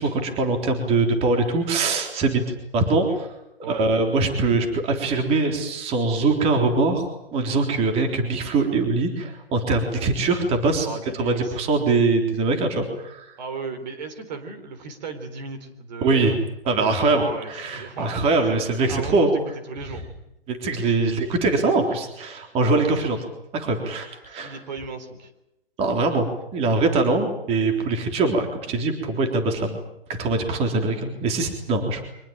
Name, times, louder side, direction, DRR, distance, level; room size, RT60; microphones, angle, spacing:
voice 1, 0.0-2.4 2.7-3.3 3.7-10.9 11.1-13.3 16.0-16.3 16.7-19.3 20.5-23.2 23.5-24.6 25.8-29.8 30.2-32.1, right 3 dB, 20° right, 4 dB, 3.6 m, -22 dB
voice 2, 3.6-3.9 10.8-11.5 13.4-16.4 16.8-19.3 19.7-20.1 21.1-21.2 22.6-22.9 24.4-25.3, right 4 dB, 45° right, 8 dB, 3.8 m, -35 dB
24.5 x 20.5 x 8.9 m, 0.84 s
figure-of-eight pair, 135°, 31 cm